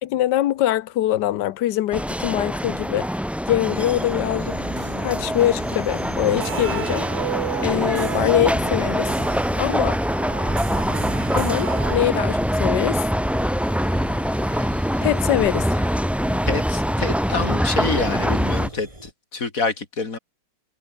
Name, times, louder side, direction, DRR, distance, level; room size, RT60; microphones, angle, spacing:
voice 1, 0.0-3.1 3.5-4.6 5.0-7.1 7.6-9.1 9.6-10.0 11.3-13.0 14.5-14.7 15.0-16.0, left 13 dB, 75° left, 1.3 m, -23 dB
sound 1, 1.9-18.7, equal, ahead, 1.0 m, -24 dB
sound 2, 3.7-19.1, right 1 dB, 15° right, 3.9 m, -40 dB
sound 3, 6.3-12.6, right 13 dB, 75° right, 1.4 m, -33 dB
voice 2, 16.4-20.2, left 4 dB, 50° left, 3.2 m, -27 dB
omnidirectional pair, 1.9 m